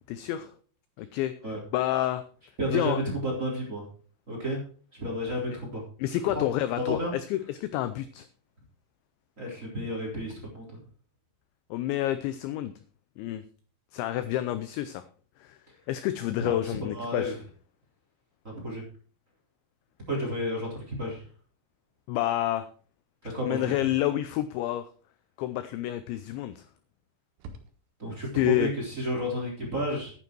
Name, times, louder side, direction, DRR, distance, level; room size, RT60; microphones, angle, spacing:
voice 1, 0.1-0.5 1.0-1.3 1.7-2.2 2.7-3.0 5.5-5.6 6.0-8.3 11.7-12.7 13.2-13.5 13.9-15.0 15.4-15.6 15.9-17.4 22.1-22.7 23.4-24.9 25.4-26.6 28.3-28.7, left 13 dB, 85° left, 12 dB, 2.6 m, -29 dB
voice 2, 2.6-2.9 3.2-3.9 4.3-4.6 4.9-5.8 6.3-6.4 6.9-7.1 9.4-10.8 16.4-17.3 18.5-18.8 20.1-21.2 23.3-23.7 28.0-30.1, equal, 15° right, -3 dB, 3.3 m, -32 dB
sound 1, 23.6-24.0 26.1-26.6 26.9-27.0 27.4-28.2, right 2 dB, 85° right, 4.2 m, -49 dB
11.5 x 9.6 x 4.6 m, 0.42 s
omnidirectional pair, 5.9 m